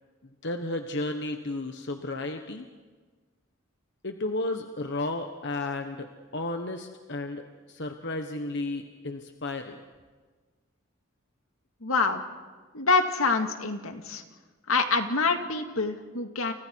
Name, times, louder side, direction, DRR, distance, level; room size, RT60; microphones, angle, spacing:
voice 1, 0.4-2.7 4.0-9.8, left 2 dB, 55° left, 5 dB, 1.3 m, -33 dB
voice 2, 11.8-12.2 12.7-14.2 14.7-16.5, left 4 dB, 80° left, 5 dB, 2.3 m, -26 dB
30.0 x 29.5 x 4.7 m, 1.4 s
head